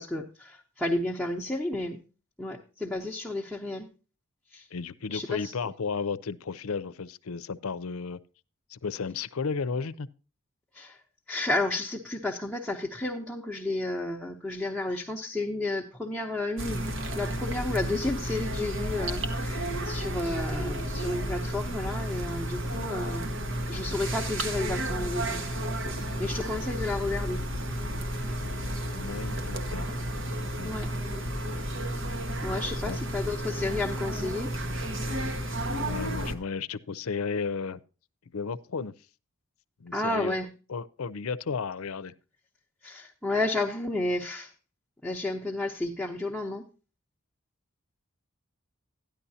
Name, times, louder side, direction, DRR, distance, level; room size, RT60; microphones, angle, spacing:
voice 1, 0.0-2.0 2.4-3.9 4.5-4.7 5.1-5.5 10.7-11.0 11.3-16.9 17.2-23.3 23.7-25.4 26.2-27.4 30.6-30.9 32.4-34.5 39.9-40.5 42.8-44.5 45.0-46.7, left 2 dB, ahead, 0.8 m, -32 dB
voice 2, 4.7-8.2 8.7-10.1 28.9-29.9 30.6-30.7 32.6-33.0 35.8-37.8 38.3-38.9 39.8-40.4 40.7-42.1, left 5 dB, 85° left, 0.6 m, -33 dB
sound 1, 16.6-36.3, right 1 dB, 65° right, 1.3 m, -32 dB
13.0 x 10.5 x 2.8 m
head